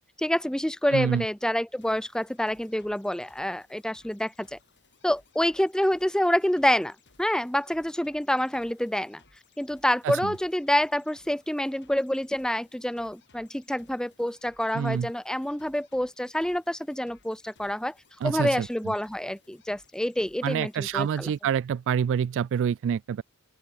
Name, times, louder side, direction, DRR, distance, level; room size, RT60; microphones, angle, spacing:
voice 1, 0.2-4.6 5.0-9.2 9.6-17.9 18.2-21.3, left 1 dB, 5° left, 0.7 m, -27 dB
voice 2, 0.9-1.2 10.0-10.3 14.7-15.1 18.2-18.7 20.4-23.2, right 8 dB, 55° right, 0.3 m, -27 dB
sound 1, 1.8-21.4, left 4 dB, 55° left, 6.2 m, -62 dB
open air
head